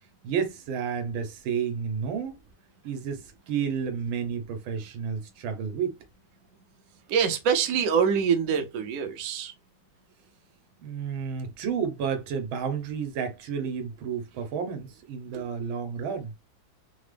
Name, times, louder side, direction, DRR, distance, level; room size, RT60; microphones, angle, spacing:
voice 1, 0.2-2.3 2.8-6.0 10.8-16.3, right 7 dB, 85° right, 1.6 m, -31 dB
voice 2, 7.1-9.5 15.3-15.4, right 7 dB, 65° right, 0.8 m, -25 dB
3.9 x 2.0 x 3.2 m
omnidirectional pair, 2.2 m